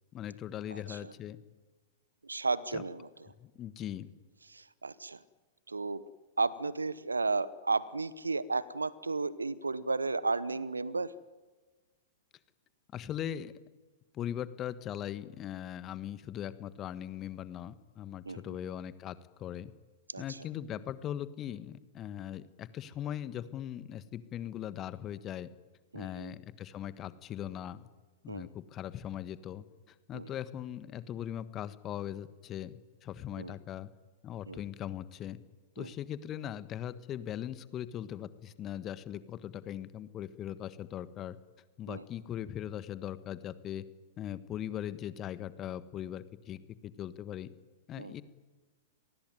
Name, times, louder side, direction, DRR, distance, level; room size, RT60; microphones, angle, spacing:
voice 1, 0.1-1.4 2.7-2.8 3.4-4.1 12.9-13.5 14.1-19.7 20.2-25.5 25.9-27.9 28.2-33.9 34.2-35.4 35.7-41.4 41.8-43.8 44.2-47.5 47.9-48.2, left 11 dB, 30° left, 14 dB, 1.4 m, -40 dB
voice 2, 2.2-3.1 4.5-5.2 5.7-6.0 6.4-11.1 18.3-18.4 20.1-20.2 25.9-26.3 28.3-28.5 30.1-30.3 33.4-33.5 34.5-34.6 35.8-35.9 41.9-42.0 48.0-48.1, right 3 dB, 85° right, 20 dB, 0.9 m, -33 dB
26.5 x 19.5 x 9.4 m, 1.3 s
figure-of-eight pair, 105°, 0 cm